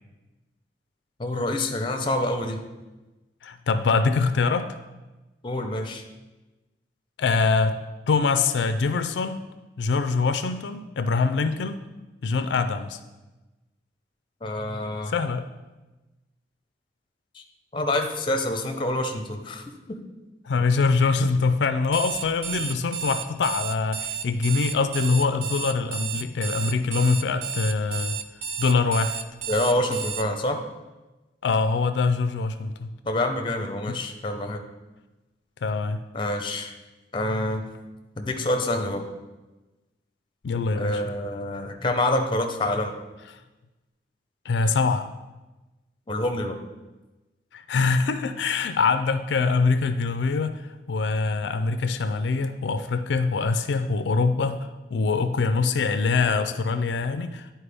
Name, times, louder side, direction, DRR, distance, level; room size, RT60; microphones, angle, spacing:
voice 1, 1.2-2.6 5.4-6.0 14.4-15.1 17.3-17.4 17.7-19.6 19.9-20.0 29.5-30.6 33.0-34.6 36.1-36.7 37.1-37.6 38.2-39.0 40.8-42.9 46.1-46.6, left 1 dB, 30° left, 5 dB, 0.6 m, -27 dB
voice 2, 3.4-4.8 7.2-7.8 8.1-9.4 9.8-11.8 12.2-13.0 15.1-15.4 20.5-28.1 28.6-29.2 31.4-32.9 33.9-34.0 35.6-36.0 40.4-41.0 44.5-45.1 47.5-50.5 50.9-57.5, left 4 dB, 85° left, 10 dB, 0.4 m, -24 dB
Alarm, 21.8-30.2, right 7 dB, 65° right, 0.4 m, -32 dB
10.0 x 4.4 x 3.4 m, 1.1 s
head